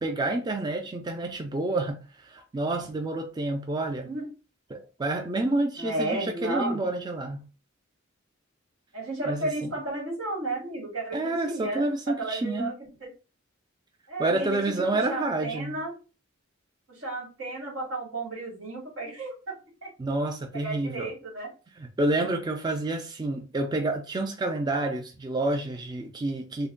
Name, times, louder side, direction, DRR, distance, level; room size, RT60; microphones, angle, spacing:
voice 1, 0.0-4.1 4.7-7.4 9.3-9.7 11.1-12.7 14.2-15.8 20.0-21.1 21.8-26.7, right 2 dB, 20° right, 0.4 m, -29 dB
voice 2, 5.8-6.8 8.9-12.7 13.0-13.1 14.1-15.9 16.9-19.9 20.6-21.5, right 2 dB, 85° right, 1.8 m, -33 dB
3.3 x 2.2 x 3.7 m
head